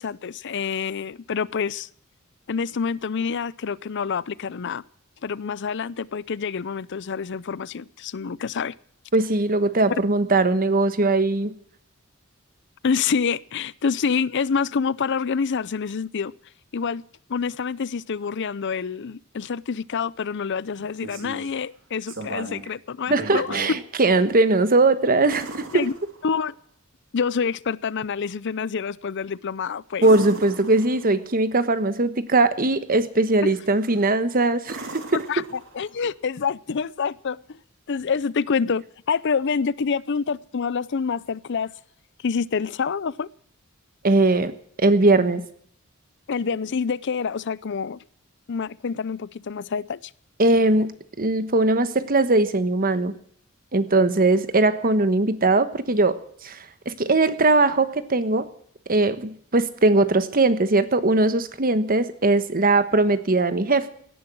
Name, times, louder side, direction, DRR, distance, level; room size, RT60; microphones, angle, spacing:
voice 1, 0.0-1.9 2.5-4.8 5.2-8.7 12.8-16.3 16.7-17.0 17.3-23.6 25.7-25.9 26.2-26.5 27.1-30.1 35.3-35.4 35.7-37.6 37.9-41.7 42.2-43.3 46.3-48.0 48.5-50.1, left 6 dB, 55° left, 21 dB, 0.5 m, -27 dB
voice 2, 9.1-11.5 23.1-25.9 30.0-35.4 44.0-45.4 50.4-53.1 53.7-56.6 56.8-58.5 58.9-63.9, right 2 dB, 45° right, 12 dB, 1.3 m, -20 dB
sound 1, 20.7-21.6 22.1-22.7 23.1-23.8 25.3-26.5 30.0-31.3 33.8-34.1 34.6-36.0 38.2-38.3, right 2 dB, 65° right, 3.2 m, -37 dB
17.0 x 11.0 x 6.1 m, 0.62 s
head